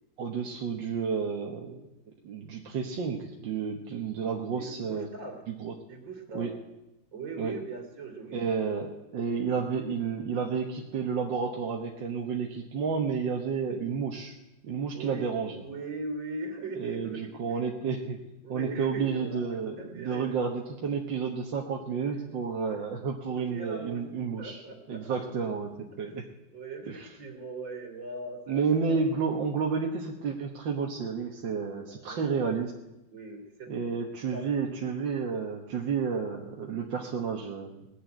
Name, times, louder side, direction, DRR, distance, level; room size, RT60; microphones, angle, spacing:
voice 1, 0.2-1.8 2.2-5.1 5.5-5.7 6.3-6.5 7.4-7.5 8.3-14.3 14.6-15.6 16.8-18.2 18.5-24.6 24.9-26.3 26.9-27.1 28.5-32.7 33.7-37.8, right 5 dB, 70° right, 0 dB, 1.9 m, -31 dB
voice 2, 4.6-5.4 5.9-6.5 7.1-8.8 13.6-13.8 14.9-17.6 18.4-20.4 22.7-23.0 23.3-24.0 24.4-25.0 26.0-26.2 26.5-29.0 32.1-32.2 33.1-33.7 34.3-34.7, right 3 dB, 90° right, 1 dB, 3.5 m, -40 dB
20.0 x 7.8 x 9.0 m, 0.96 s
omnidirectional pair, 2.1 m